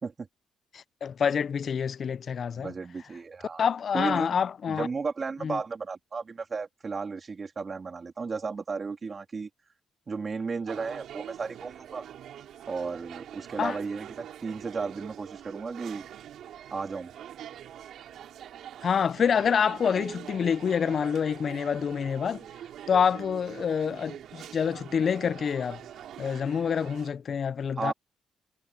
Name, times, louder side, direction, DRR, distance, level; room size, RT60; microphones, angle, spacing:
voice 1, 0.7-2.7 3.6-4.9 5.4-5.6 13.6-13.8 18.8-22.4 22.9-25.8 26.2-27.9, left 7 dB, 50° left, 0.4 m, -27 dB
voice 2, 2.6-3.7 3.9-4.4 4.7-9.5 10.1-12.1 12.7-16.1 16.7-17.1 27.8-27.9, right 4 dB, 35° right, 3.0 m, -34 dB
sound 1, 10.7-27.1, right 10 dB, 75° right, 5.3 m, -44 dB
cardioid pair, 90°, 0 cm